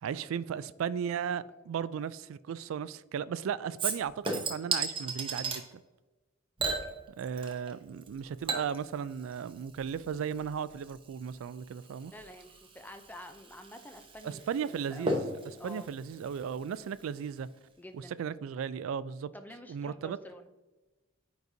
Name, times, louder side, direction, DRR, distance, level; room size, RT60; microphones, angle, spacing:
voice 1, 0.0-5.8 7.2-12.1 14.2-17.5 17.9-19.3 19.7-20.2, right 7 dB, 75° right, 0.3 m, -36 dB
Chink clink / Liquid, 3.8-5.6 6.6-7.7 8.0-17.0 17.4-17.5, right 3 dB, 25° right, 0.8 m, -37 dB
voice 2, 12.1-14.4 14.7-15.2 15.6-15.9 17.8-18.1 19.3-20.5, equal, 10° left, 0.4 m, -48 dB
9.2 x 4.1 x 2.7 m
head